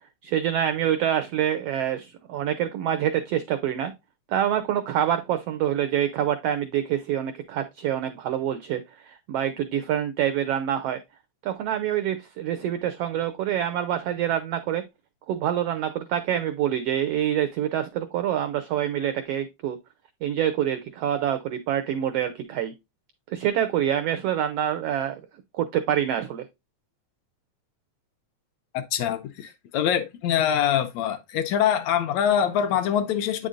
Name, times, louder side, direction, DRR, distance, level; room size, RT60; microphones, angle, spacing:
voice 1, 0.2-3.9 4.3-11.0 11.4-14.8 15.3-19.8 20.2-22.7 23.3-25.2 25.5-26.4, right 10 dB, 85° right, 1.3 m, -26 dB
voice 2, 28.7-33.5, left 9 dB, 75° left, 1.8 m, -24 dB
8.5 x 5.3 x 2.4 m
omnidirectional pair, 3.5 m